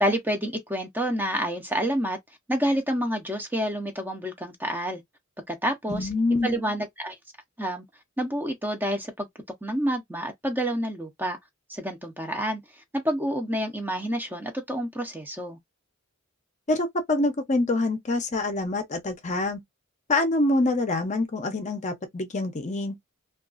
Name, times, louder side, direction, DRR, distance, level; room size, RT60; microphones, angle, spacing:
voice 1, 0.0-2.2 2.5-5.0 5.5-6.1 6.4-7.1 7.6-7.8 8.2-9.3 9.6-11.4 11.7-12.6 12.9-15.6, equal, 10° right, 0.6 m, -28 dB
voice 2, 5.9-6.5 16.7-19.6 20.1-23.0, left 2 dB, 35° left, 0.6 m, -25 dB
2.8 x 2.3 x 2.4 m
head